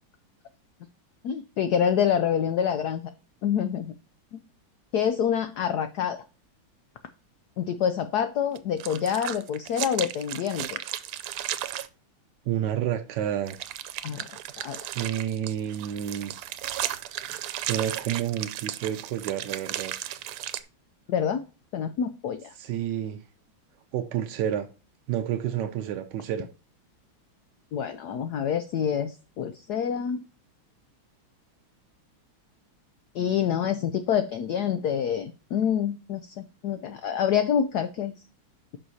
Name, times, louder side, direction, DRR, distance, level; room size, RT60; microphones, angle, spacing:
voice 1, 1.2-3.1 3.4-3.9 4.3-4.4 4.9-6.2 7.6-10.8 14.0-14.3 14.6-14.9 21.1-21.4 21.7-22.5 27.7-30.2 33.1-38.1, left 8 dB, 85° left, 0.8 m, -27 dB
sound 1, 8.6-11.9 13.5-20.6, right 12 dB, 90° right, 1.5 m, -35 dB
voice 2, 12.5-13.6 14.9-16.3 17.6-19.9 22.6-23.2 23.9-24.7 25.1-26.5, right 10 dB, 70° right, 1.0 m, -29 dB
11.0 x 6.1 x 2.7 m
omnidirectional pair, 2.4 m